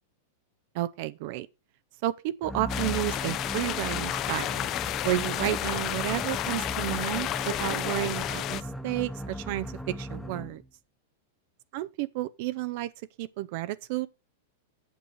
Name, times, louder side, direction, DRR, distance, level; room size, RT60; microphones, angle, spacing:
voice 1, 0.7-1.5 2.0-4.7 5.0-10.6 11.7-12.9 13.2-14.1, right 16 dB, 55° right, 0.5 m, -31 dB
sound 1, 2.4-10.7, equal, ahead, 0.9 m, -38 dB
sound 2, 2.7-8.6, left 13 dB, 40° left, 0.5 m, -31 dB
8.1 x 6.2 x 5.3 m
hypercardioid pair, 115°, 0 cm